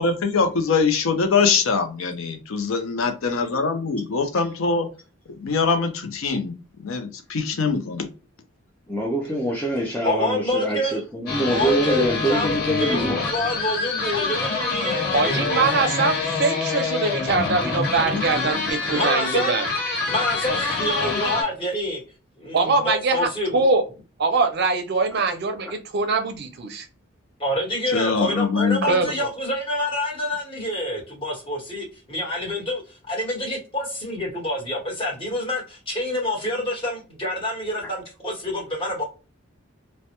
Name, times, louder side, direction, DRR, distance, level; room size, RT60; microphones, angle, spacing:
voice 1, 0.0-4.9 5.4-6.5 6.8-8.1 27.9-29.1, left 4 dB, 75° left, 0.5 m, -23 dB
voice 2, 8.9-13.3 18.6-19.0 25.1-25.2 25.6-25.7, right 1 dB, 5° left, 0.4 m, -25 dB
voice 3, 10.0-11.0 11.4-12.0 12.3-15.8 18.3-18.5 18.8-19.6 20.1-22.0 22.4-23.7 27.4-39.0, left 1 dB, 25° left, 1.0 m, -27 dB
sound 1, 11.3-21.4, left 4 dB, 50° left, 0.8 m, -26 dB
voice 4, 15.1-19.7 22.5-23.8 24.2-26.9 28.8-29.1, right 3 dB, 50° right, 0.5 m, -23 dB
2.1 x 2.1 x 2.8 m
head